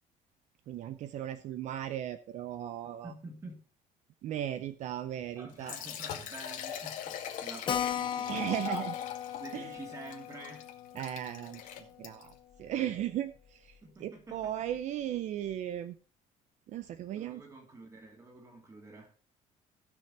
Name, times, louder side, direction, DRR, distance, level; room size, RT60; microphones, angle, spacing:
voice 1, 0.7-3.1 4.2-5.8 8.3-8.9 9.5-9.8 10.9-16.0 16.7-17.4, right 11 dB, 55° right, 0.7 m, -37 dB
voice 2, 3.0-3.6 5.3-8.8 9.4-10.7 10.9-11.0 13.8-14.6 17.2-19.1, right 2 dB, 20° right, 2.8 m, -48 dB
Liquid, 5.5-12.4, left 9 dB, 65° left, 2.0 m, -42 dB
Keyboard (musical), 7.7-12.7 13.0-13.1 13.4-13.5 13.7-13.8 14.4-14.7, left 9 dB, 35° left, 0.7 m, -38 dB
17.0 x 6.0 x 4.3 m
cardioid pair, 160°, 14 cm